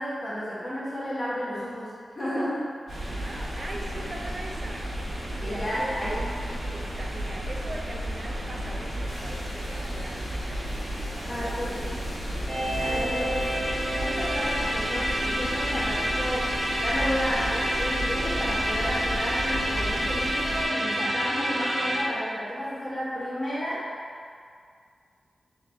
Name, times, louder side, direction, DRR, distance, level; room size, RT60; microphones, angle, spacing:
voice 1, 0.0-2.7 3.0-3.2 5.4-6.2 11.2-11.9 12.6-13.5 13.9-23.9, equal, 35° left, -10 dB, 1.1 m, -32 dB
sound 1, 2.9-20.7, equal, 75° right, 1.0 m, -33 dB
voice 2, 3.1-4.9 5.4-12.2 12.8-13.5, right 1 dB, 40° right, 0 dB, 0.4 m, -41 dB
sound 2, 9.1-20.3, left 1 dB, 65° left, 0.8 m, -44 dB
sound 3, 12.5-22.0, equal, 25° right, 1.1 m, -28 dB
3.6 x 3.4 x 3.4 m, 2.2 s
wide cardioid pair, 105°, 0 cm